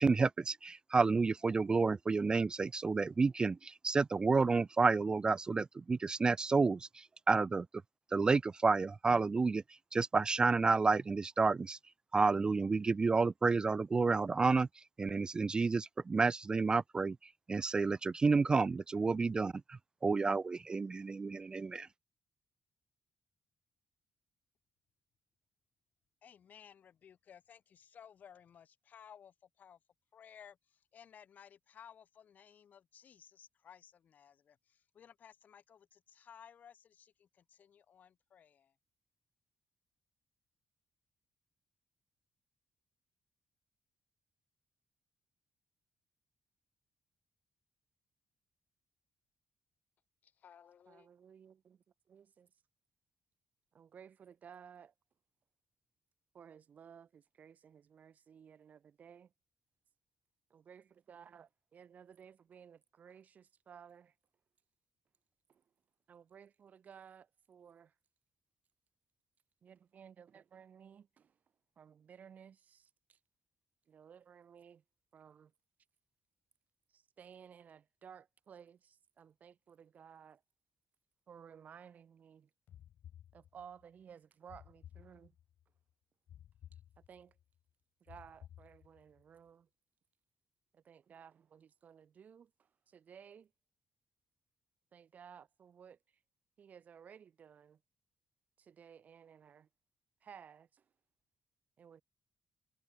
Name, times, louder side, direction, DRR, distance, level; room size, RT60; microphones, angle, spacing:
voice 1, 0.0-7.7 8.1-9.6 9.9-11.8 12.1-21.9, right 4 dB, 25° right, 0.4 m, -30 dB
voice 2, 26.2-29.8 30.1-38.8 50.2-51.1, left 8 dB, 55° left, 7.6 m, -58 dB
voice 3, 50.9-52.5 53.7-54.9 56.3-59.3 60.5-64.1 65.5-65.6 66.1-67.9 69.6-71.4 71.8-73.2 73.9-74.8 75.1-75.5 76.9-80.4 81.3-82.5 83.3-85.3 87.0-87.4 88.0-89.7 90.7-93.5 94.9-96.2 96.6-97.8 98.6-99.7 100.2-100.9 101.8-102.0, right 7 dB, 55° right, 3.0 m, -57 dB
sound 1, 82.7-83.9 84.5-85.6 86.3-87.4 88.1-89.2, left 11 dB, 75° left, 7.3 m, -56 dB
cardioid pair, 115°, 3 cm